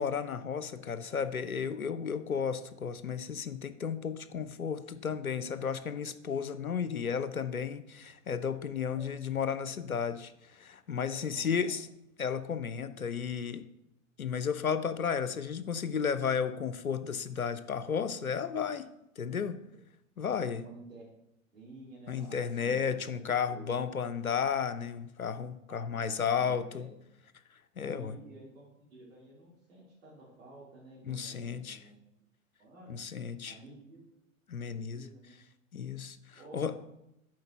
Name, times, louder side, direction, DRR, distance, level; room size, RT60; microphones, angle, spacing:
voice 1, 0.0-11.9 12.2-13.7 14.2-18.9 19.2-19.6 20.2-20.6 22.1-26.9 27.8-28.2 31.1-31.8 32.9-33.6 34.5-35.1 35.7-36.8, left 7 dB, 90° left, 13 dB, 0.6 m, -33 dB
voice 2, 6.8-7.2 8.8-9.1 11.0-11.7 20.5-21.1 21.5-22.8 23.1-23.8 25.7-26.9 27.8-32.0 32.6-33.0 33.5-34.0 34.6-35.4 36.4-36.8, right 2 dB, 70° right, -7 dB, 2.6 m, -52 dB
7.7 x 4.5 x 4.3 m, 0.83 s
figure-of-eight pair, 100°, 42 cm